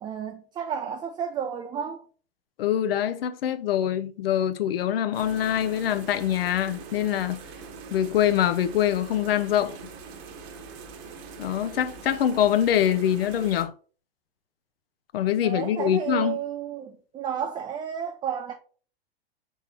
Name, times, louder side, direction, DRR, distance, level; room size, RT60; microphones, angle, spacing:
voice 1, 0.0-2.0 15.4-18.5, right 8 dB, 15° right, 0.3 m, -32 dB
voice 2, 2.6-7.4 7.9-9.7 11.4-13.7 15.1-16.4, left 10 dB, 70° left, 0.6 m, -24 dB
sound 1, 5.1-13.6, right 5 dB, 40° right, 0.9 m, -43 dB
4.6 x 3.6 x 2.9 m
hypercardioid pair, 105°, 30 cm